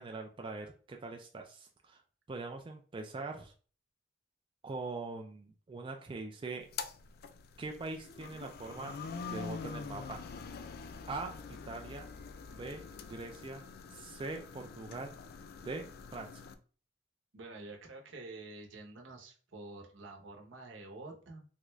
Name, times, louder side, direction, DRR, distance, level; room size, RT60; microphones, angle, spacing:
voice 1, 0.0-2.0 2.3-3.5 4.6-6.7 7.6-9.0 9.2-10.3 11.1-12.1 12.5-12.8 13.1-13.7 13.9-15.2 15.6-15.9 16.1-16.3, right 3 dB, 25° right, 3 dB, 0.3 m, -42 dB
sound 1, 6.6-16.5, left 5 dB, 55° left, 0.3 m, -45 dB
voice 2, 17.3-21.4, right 2 dB, 75° right, 1 dB, 0.9 m, -48 dB
3.7 x 2.3 x 3.1 m, 0.40 s
head